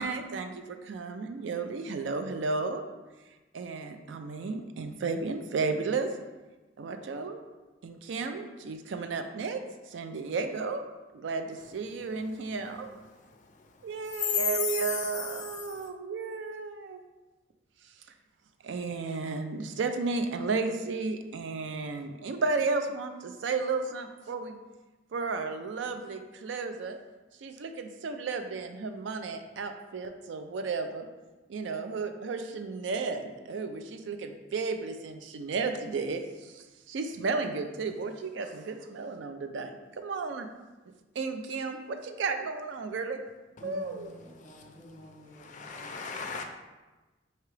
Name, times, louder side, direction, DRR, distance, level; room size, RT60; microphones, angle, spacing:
voice 1, 0.0-2.8 3.5-6.1 6.8-7.4 7.8-10.8 11.1-12.9 13.8-17.0 17.8-17.9 18.6-24.6 25.1-27.0 27.4-31.1 31.5-40.5 41.2-43.2 43.6-44.1, right 4 dB, 65° right, 7 dB, 0.4 m, -33 dB
voice 2, 14.6-15.0 15.7-15.9 45.3-46.4, left 7 dB, 40° left, 4 dB, 0.4 m, -34 dB
voice 3, 43.6-46.0, left 1 dB, 10° left, -6 dB, 1.2 m, -49 dB
4.6 x 2.8 x 3.2 m, 1.2 s
head